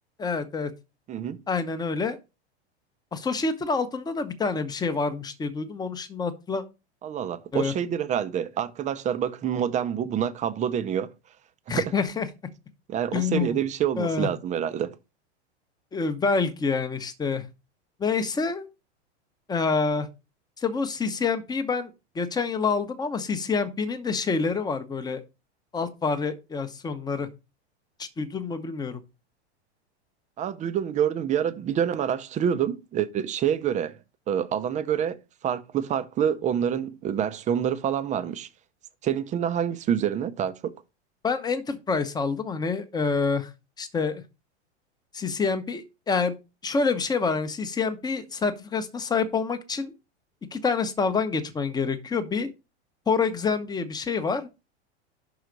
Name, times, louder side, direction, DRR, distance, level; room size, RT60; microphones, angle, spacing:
voice 1, 0.2-0.7 1.5-2.2 3.1-6.6 7.5-7.7 11.7-12.3 13.1-13.6 14.0-14.3 15.9-17.5 18.0-18.7 19.5-20.1 20.6-25.2 25.7-27.3 28.0-29.0 41.2-43.5 43.8-44.2 45.1-46.4 46.6-49.9 50.5-52.5 53.1-54.5, left 4 dB, 10° left, 0.8 m, -27 dB
voice 2, 1.1-1.4 7.0-11.1 11.7-11.9 12.9-15.0 30.4-34.0 34.3-35.2 35.4-38.5 39.0-40.7, right 9 dB, 20° right, 0.6 m, -27 dB
5.6 x 4.7 x 5.2 m
hypercardioid pair, 125°, 34 cm